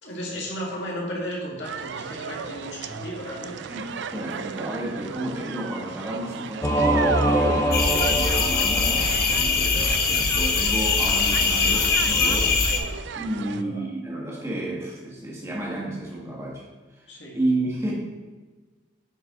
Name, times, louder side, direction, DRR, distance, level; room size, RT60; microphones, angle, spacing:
voice 1, 0.0-3.7 13.6-13.7 17.1-17.4, equal, 70° left, -4 dB, 2.1 m, -34 dB
sound 1, 1.6-13.6, right 6 dB, 70° right, 0.3 m, -34 dB
voice 2, 3.7-12.6 13.1-16.6 17.0-17.1 17.3-17.9, right 1 dB, 15° right, -4 dB, 1.6 m, -31 dB
Singing / Musical instrument, 6.6-9.5, equal, 15° left, 0.6 m, -24 dB
sound 2, 7.7-12.8, left 4 dB, 55° left, 0.8 m, -22 dB
9.6 x 4.6 x 3.8 m, 1.3 s
head